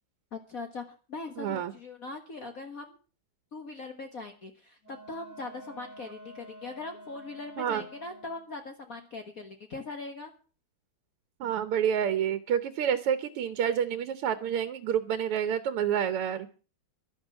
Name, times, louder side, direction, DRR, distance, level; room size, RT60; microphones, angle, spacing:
voice 1, 0.3-3.0 3.5-10.3, left 3 dB, 45° left, 6 dB, 1.7 m, -41 dB
voice 2, 1.4-1.7 7.6-7.8 11.4-16.5, right 9 dB, 90° right, 11 dB, 1.9 m, -28 dB
Wind instrument woodwind instrument, 4.8-8.5, right 1 dB, 30° right, 5.2 m, -49 dB
12.0 x 11.5 x 7.1 m, 0.37 s
omnidirectional pair, 2.4 m